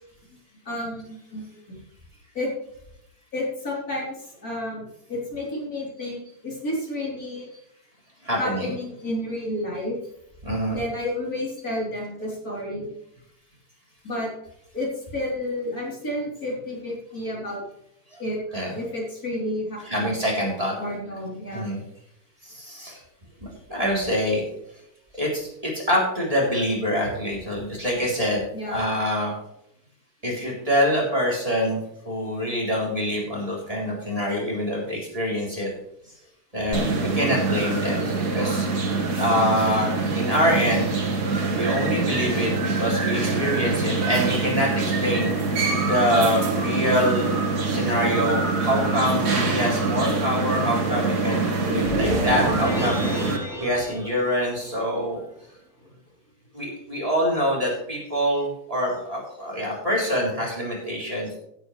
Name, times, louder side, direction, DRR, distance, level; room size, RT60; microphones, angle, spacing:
voice 1, 0.7-1.8 2.3-2.5 3.3-4.2 4.4-4.8 5.1-7.5 8.4-10.0 10.7-12.9 14.0-14.3 14.7-17.6 18.2-18.4 18.7-20.2 20.8-21.7 28.5-28.8 52.0-52.3, left 1 dB, 65° left, -3 dB, 4.3 m, -31 dB
voice 2, 8.2-8.7 10.4-10.8 18.1-18.2 18.5-18.8 19.8-20.7 21.5-21.8 22.4-23.0 23.4-24.4 25.1-28.4 28.7-29.3 30.2-35.7 36.5-38.1 38.3-38.7 39.2-40.9 41.4-45.3 45.8-47.3 47.7-53.3 53.6-55.2 56.5-61.4, equal, 20° right, -4 dB, 3.7 m, -25 dB
sound 1, 36.7-53.4, right 3 dB, 75° right, 2.2 m, -24 dB
sound 2, 51.6-54.9, equal, ahead, 4.7 m, -30 dB
16.0 x 9.0 x 3.3 m, 0.77 s
omnidirectional pair, 1.7 m